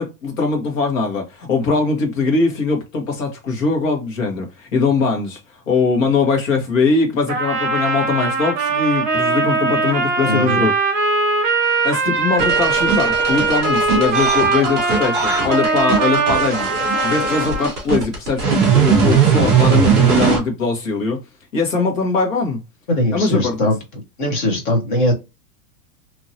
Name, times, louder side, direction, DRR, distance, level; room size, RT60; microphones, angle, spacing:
voice 1, 0.0-5.4 5.7-10.7 11.8-16.7 17.0-21.2 21.5-22.6 23.1-23.6, left 4 dB, 60° left, 1.5 m, -21 dB
Trumpet, 7.3-17.7, right 4 dB, 20° right, 0.9 m, -20 dB
voice 2, 10.2-10.7 22.9-23.8 24.2-25.1, left 1 dB, 35° left, 1.0 m, -20 dB
sound 1, 12.4-20.4, right 6 dB, ahead, 0.4 m, -19 dB
2.9 x 2.7 x 2.7 m
supercardioid pair, 175°, 45 cm